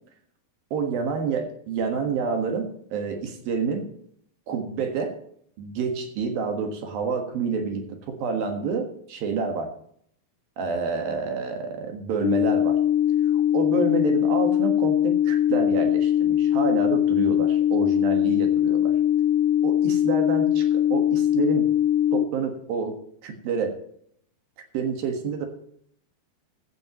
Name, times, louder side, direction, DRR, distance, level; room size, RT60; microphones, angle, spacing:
voice 1, 0.7-3.9 4.5-5.2 5.6-9.7 10.6-12.8 13.5-19.0 19.6-21.7 22.1-23.0 23.2-23.7 24.7-25.5, right 5 dB, 70° right, 4 dB, 3.3 m, -28 dB
sound 1, 12.2-22.2, left 11 dB, 80° left, 2.1 m, -21 dB
16.0 x 12.0 x 3.1 m, 0.67 s
omnidirectional pair, 4.5 m